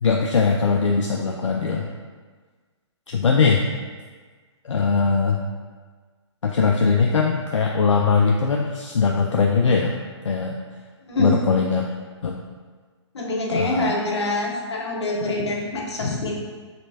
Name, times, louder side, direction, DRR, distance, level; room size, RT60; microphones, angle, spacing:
voice 1, 0.0-1.9 3.1-3.6 4.6-5.4 6.4-9.9 10.2-10.6 11.2-11.9 12.2-12.4 13.5-13.9, left 5 dB, 85° left, 0 dB, 0.4 m, -20 dB
voice 2, 13.1-16.3, left 2 dB, 65° left, -3 dB, 1.0 m, -25 dB
4.2 x 3.2 x 2.8 m, 1.5 s
figure-of-eight pair, 135°, 15 cm